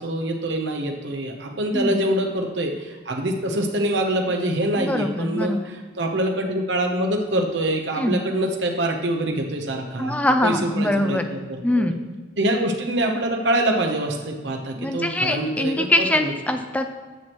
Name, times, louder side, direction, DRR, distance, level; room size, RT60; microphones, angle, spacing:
voice 1, 0.0-11.9 12.4-16.3, right 1 dB, 75° right, 3 dB, 0.9 m, -25 dB
voice 2, 4.8-5.6 8.0-8.2 10.0-11.3 11.6-11.9 14.8-16.9, left 1 dB, 10° left, 7 dB, 0.4 m, -23 dB
9.3 x 6.2 x 3.0 m, 1.3 s
head